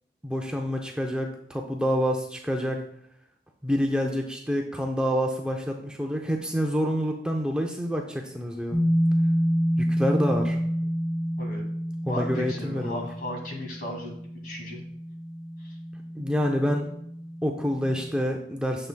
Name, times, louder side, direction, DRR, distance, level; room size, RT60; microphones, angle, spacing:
voice 1, 0.2-2.8 3.6-8.8 9.8-10.6 12.1-13.1 16.2-16.9 17.4-18.9, equal, 5° right, 1 dB, 0.5 m, -27 dB
sound 1, 8.7-18.2, equal, 35° left, 2.0 m, -29 dB
voice 2, 12.1-14.8 15.6-15.8, left 1 dB, 55° left, 0 dB, 2.2 m, -36 dB
9.6 x 7.0 x 2.2 m, 0.71 s
head